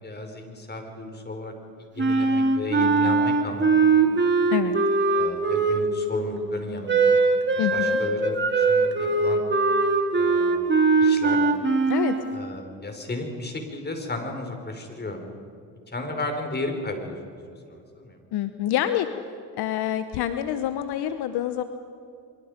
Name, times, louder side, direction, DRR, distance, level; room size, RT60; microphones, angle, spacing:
voice 1, 0.0-1.5 1.8-4.2 5.1-7.1 7.5-9.4 10.2-10.6 11.0-11.4 12.3-15.2 15.9-17.2 17.5-18.2, left 2 dB, 25° left, 4 dB, 5.3 m, -34 dB
Wind instrument woodwind instrument, 2.0-6.1 6.9-12.3, right 4 dB, 25° right, 2.9 m, -21 dB
voice 2, 2.8-3.2 4.5-4.8 7.6-8.0 11.9-12.1 18.3-19.1 19.6-21.6, left 12 dB, 70° left, 10 dB, 1.2 m, -27 dB
25.0 x 24.5 x 5.3 m, 2.5 s
supercardioid pair, 75°, 40 cm